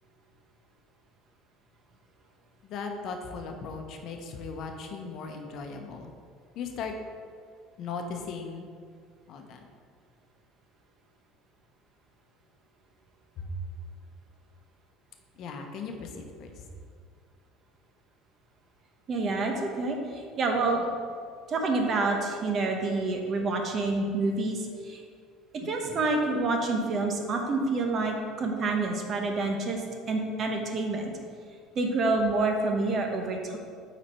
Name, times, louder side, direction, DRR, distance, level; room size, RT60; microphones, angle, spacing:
voice 1, 2.6-6.1 6.5-6.9 7.8-8.7 9.3-9.6 13.4-13.5 15.4-16.6, left 5 dB, 55° left, 4 dB, 0.8 m, -38 dB
voice 2, 19.1-20.8 21.5-25.0 25.5-31.1 31.7-33.6, right 3 dB, 40° right, 3 dB, 1.0 m, -28 dB
8.6 x 4.2 x 4.3 m, 2.1 s
cardioid pair, 120°, 0 cm